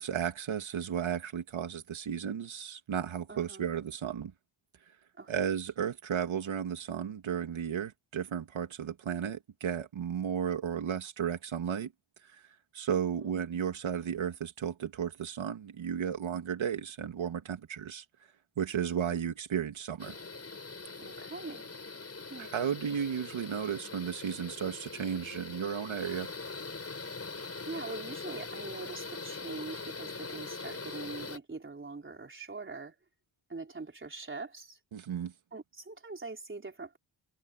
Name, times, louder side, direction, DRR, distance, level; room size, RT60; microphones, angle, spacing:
voice 1, 0.0-4.3 5.3-11.9 12.3-12.4 12.7-18.0 18.6-20.2 22.4-26.3 34.9-35.3, right 8 dB, 90° right, 2.7 m, -34 dB
voice 2, 3.3-3.6 5.2-5.4 13.2-13.4 21.0-21.7 22.3-22.5 27.7-33.0 33.5-34.8 35.5-37.0, right 3 dB, 25° right, 4.0 m, -43 dB
sound 1, 20.0-31.4, left 4 dB, 30° left, 7.1 m, -42 dB
wide cardioid pair, 125°, 46 cm